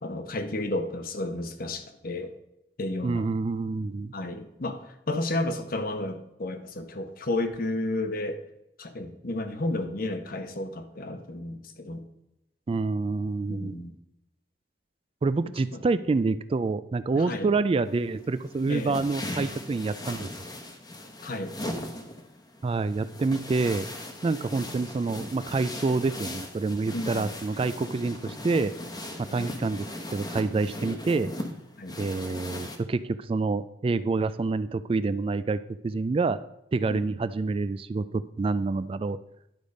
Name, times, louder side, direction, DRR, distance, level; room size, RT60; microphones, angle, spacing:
voice 1, 0.0-2.3 2.8-3.3 4.1-8.4 8.8-12.0 13.5-14.0 15.7-15.8 17.1-17.5 18.7-19.0 21.2-21.6 26.9-27.4 29.3-29.5 31.8-32.0 36.9-37.0, left 2 dB, 55° left, 8 dB, 0.9 m, -32 dB
voice 2, 3.0-4.1 12.7-13.8 15.2-20.3 22.6-23.9 24.2-28.7 29.2-29.9 30.1-31.4 32.0-36.4 36.7-39.2, right 3 dB, 30° right, 14 dB, 0.3 m, -27 dB
sound 1, 17.9-32.8, left 1 dB, 25° left, 1.0 m, -39 dB
10.5 x 5.0 x 5.2 m, 0.85 s
head